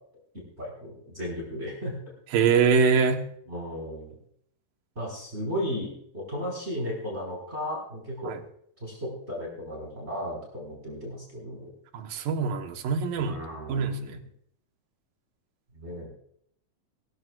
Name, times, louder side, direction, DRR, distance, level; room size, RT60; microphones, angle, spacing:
voice 1, 0.3-2.0 2.4-2.5 3.5-4.2 4.9-8.3 8.8-11.7 13.1-14.1 15.7-16.1, equal, 20° right, -3 dB, 4.8 m, -35 dB
voice 2, 2.3-3.3 8.2-8.4 11.9-13.4 13.7-14.2, right 5 dB, 85° right, 6 dB, 2.9 m, -24 dB
21.5 x 14.0 x 2.4 m, 0.66 s
omnidirectional pair, 3.9 m